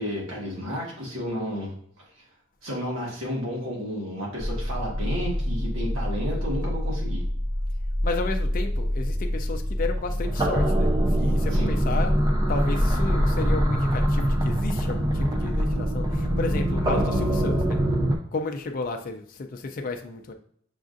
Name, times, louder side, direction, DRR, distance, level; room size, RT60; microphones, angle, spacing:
voice 1, 0.0-1.7 2.6-7.2 11.5-11.7, equal, 85° right, -4 dB, 1.5 m, -32 dB
sound 1, 4.4-18.2, equal, 20° right, 0.5 m, -24 dB
voice 2, 8.0-10.9 11.1-12.1 12.5-17.8 18.3-20.3, left 3 dB, 45° left, 5 dB, 0.4 m, -32 dB
6.1 x 2.4 x 2.5 m, 0.62 s
head